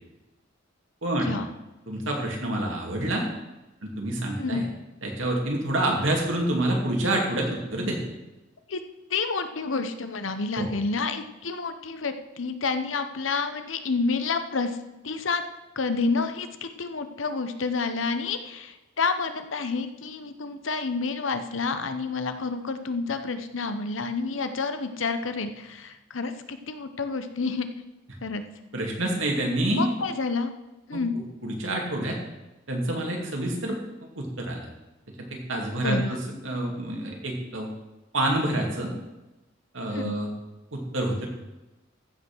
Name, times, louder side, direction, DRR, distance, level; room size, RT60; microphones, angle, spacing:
voice 1, 1.0-1.3 1.9-3.3 3.8-4.6 5.0-8.0 10.6-10.7 28.7-29.9 30.9-31.0 31.4-32.2 32.7-33.8 34.2-34.7 35.3-36.2 36.4-37.7 38.1-38.9 39.7-40.3 40.7-41.3, right 1 dB, 80° right, 0 dB, 2.7 m, -27 dB
voice 2, 9.1-14.8 15.0-15.4 15.8-27.7 28.2-28.4 29.7-30.5 30.9-31.1 35.8-36.1 39.9-40.2, left 4 dB, 85° left, 9 dB, 0.9 m, -29 dB
14.5 x 5.6 x 6.2 m, 1.1 s
head